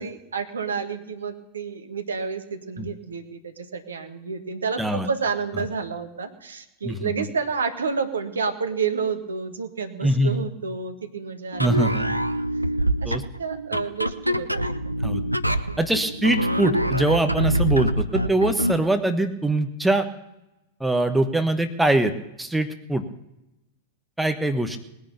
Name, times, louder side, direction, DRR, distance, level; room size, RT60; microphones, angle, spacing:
voice 1, 0.0-12.2 13.0-14.6, right 5 dB, 70° right, 7 dB, 1.6 m, -30 dB
voice 2, 4.8-5.1 6.8-7.1 10.0-10.5 11.6-12.1 13.0-13.2 15.0-15.2 15.8-20.0 20.8-22.1 22.4-23.0 24.2-24.8, right 1 dB, 5° right, 7 dB, 1.2 m, -23 dB
sound 1, 11.5-18.8, right 1 dB, 90° right, 0.5 m, -25 dB
20.0 x 10.5 x 6.8 m, 0.93 s
figure-of-eight pair, 90°, 0 cm